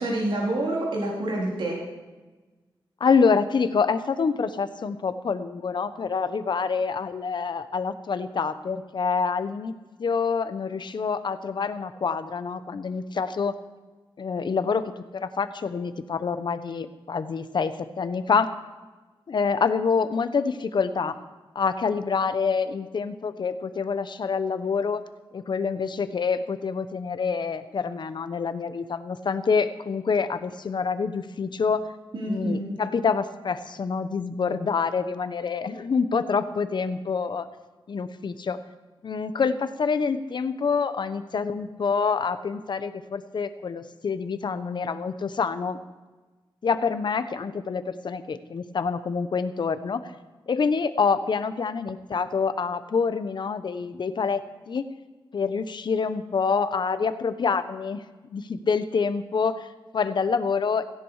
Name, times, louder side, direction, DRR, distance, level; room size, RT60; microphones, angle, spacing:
voice 1, 0.0-1.8 32.1-32.8, right 1 dB, 65° right, -3 dB, 4.0 m, -27 dB
voice 2, 3.0-13.5 14.2-18.5 19.3-21.2 21.5-25.0 25.3-31.9 32.3-37.5 37.9-38.6 39.0-45.8 46.6-50.0 50.5-54.4 54.7-54.9 55.3-58.0 58.3-60.9, left 5 dB, 60° left, 11 dB, 1.0 m, -26 dB
17.0 x 16.0 x 4.9 m, 1.2 s
wide cardioid pair, 135°, 9 cm